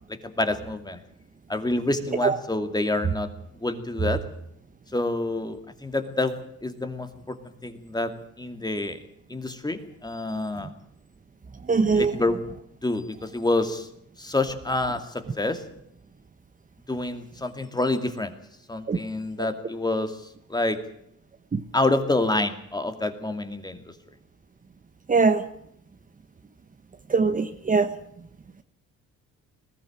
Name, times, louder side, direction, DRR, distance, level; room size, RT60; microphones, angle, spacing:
voice 1, 0.2-1.0 1.5-3.3 3.6-4.2 4.9-6.4 6.6-7.3 7.6-8.1 8.4-9.0 9.3-10.7 11.9-12.4 12.8-13.9 14.2-15.6 16.9-18.3 18.7-20.2 20.5-20.8 21.7-23.9, left 2 dB, 15° left, 8 dB, 2.4 m, -27 dB
voice 2, 11.7-12.1 18.9-19.0 21.5-21.6 25.1-25.4 27.1-27.9, right 4 dB, 25° right, 9 dB, 1.2 m, -21 dB
20.0 x 15.0 x 8.8 m, 0.73 s
cardioid pair, 90°, 31 cm